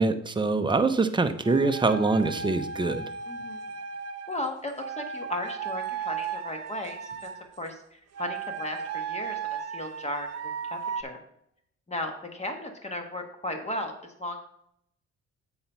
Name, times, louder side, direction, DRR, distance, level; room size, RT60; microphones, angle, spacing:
voice 1, 0.0-3.1, right 3 dB, 15° right, 7 dB, 0.7 m, -24 dB
sound 1, 1.4-4.4 4.8-7.4 8.1-11.0, right 6 dB, 55° right, 0.7 m, -35 dB
voice 2, 3.3-3.6 4.3-7.3 7.6-11.2 11.9-14.4, left 1 dB, 20° left, 4 dB, 1.5 m, -36 dB
7.8 x 4.4 x 5.6 m, 0.72 s
cardioid pair, 90°, 30 cm